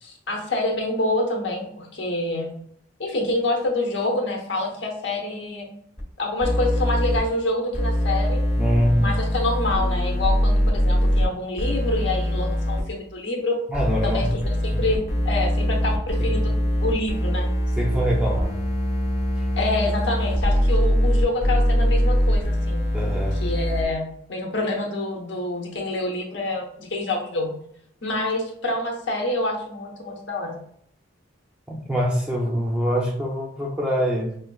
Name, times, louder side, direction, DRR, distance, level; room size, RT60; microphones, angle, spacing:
voice 1, 0.0-2.5 3.0-5.7 6.2-8.4 9.0-13.6 14.0-16.5 16.8-17.5 19.5-22.8 23.3-27.5 28.0-30.5, left 2 dB, 65° left, 0 dB, 0.9 m, -27 dB
sound 1, 6.0-6.1 6.4-7.2 7.7-11.3 11.6-12.8 13.7-23.8, equal, 35° left, 0.9 m, -22 dB
voice 2, 8.6-9.2 13.7-14.3 17.8-18.5 19.4-19.5 22.9-23.4 31.7-34.3, equal, 5° right, -2 dB, 0.4 m, -24 dB
4.9 x 2.6 x 2.2 m, 0.66 s
head